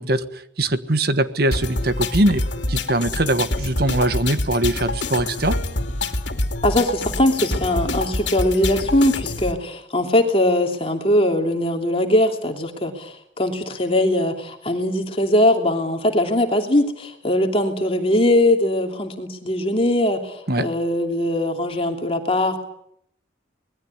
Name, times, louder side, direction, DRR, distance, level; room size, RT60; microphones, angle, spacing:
voice 1, 0.0-2.4 2.7-5.6 20.5-20.7, right 1 dB, 55° right, 12 dB, 1.4 m, -21 dB
sound 1, 1.5-9.5, left 2 dB, 75° left, 2.6 m, -26 dB
voice 2, 6.6-22.6, left 1 dB, 30° left, 3 dB, 2.9 m, -21 dB
25.0 x 20.5 x 9.6 m, 0.73 s
head